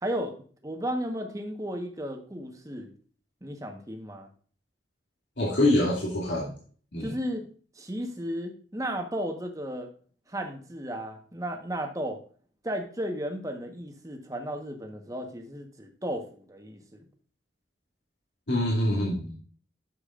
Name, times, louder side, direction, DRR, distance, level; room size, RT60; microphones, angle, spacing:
voice 1, 0.0-0.4 0.6-2.9 3.4-4.3 7.0-7.4 7.8-9.9 10.3-12.2 12.6-17.0, equal, 20° right, 4 dB, 1.3 m, -34 dB
voice 2, 5.4-6.5 6.9-7.1 18.5-19.3, left 1 dB, 85° left, -5 dB, 2.5 m, -25 dB
10.0 x 7.1 x 2.5 m, 0.44 s
head